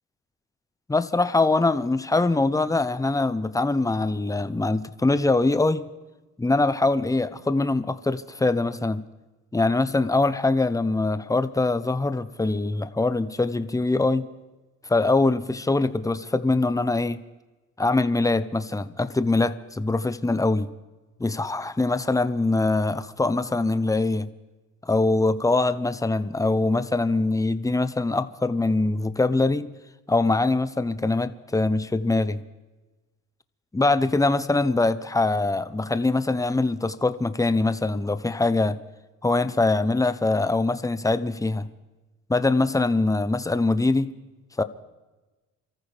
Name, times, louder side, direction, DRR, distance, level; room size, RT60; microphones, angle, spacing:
voice 1, 0.9-5.9 6.4-9.0 9.5-14.3 14.9-17.2 17.8-20.7 21.2-24.3 24.8-29.7 30.1-32.4 33.7-38.8 39.2-41.7 42.3-44.1 44.6-44.7, left 2 dB, 10° left, 12 dB, 0.8 m, -23 dB
27.5 x 14.5 x 3.5 m, 1.1 s
cardioid pair, 90°, 30 cm